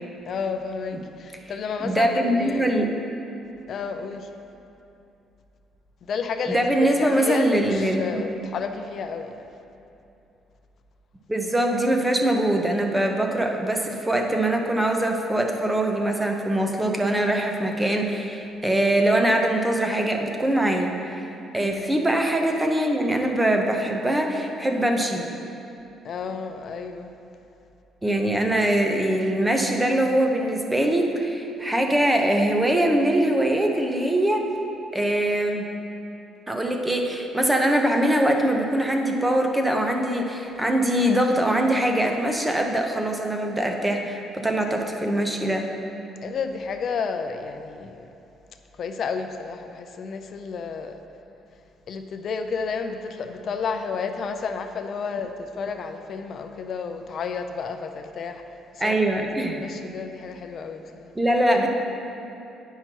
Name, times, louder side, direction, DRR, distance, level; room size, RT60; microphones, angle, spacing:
voice 1, 0.3-2.7 3.7-4.3 6.0-9.3 21.6-21.9 26.0-27.1 46.2-48.1 48.8-51.0 51.9-58.4 58.7-59.2 59.6-61.1, left 5 dB, 50° left, 6 dB, 0.5 m, -31 dB
voice 2, 1.8-2.9 6.5-8.2 11.3-21.2 21.5-25.3 28.0-34.4 34.9-35.7 36.5-45.7 58.8-59.6 61.2-61.7, right 1 dB, 10° right, 3 dB, 0.7 m, -22 dB
9.2 x 5.6 x 4.5 m, 2.8 s
cardioid pair, 135°, 0 cm